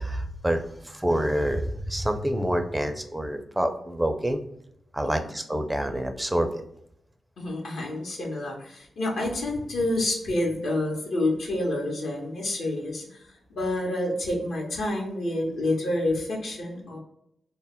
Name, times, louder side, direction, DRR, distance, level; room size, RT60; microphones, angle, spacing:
voice 1, 0.0-4.4 4.9-6.6, right 1 dB, 15° right, 6 dB, 0.4 m, -27 dB
voice 2, 7.4-17.0, left 1 dB, 80° left, 0 dB, 0.8 m, -28 dB
2.2 x 2.0 x 3.5 m, 0.76 s
supercardioid pair, 45°, 0 cm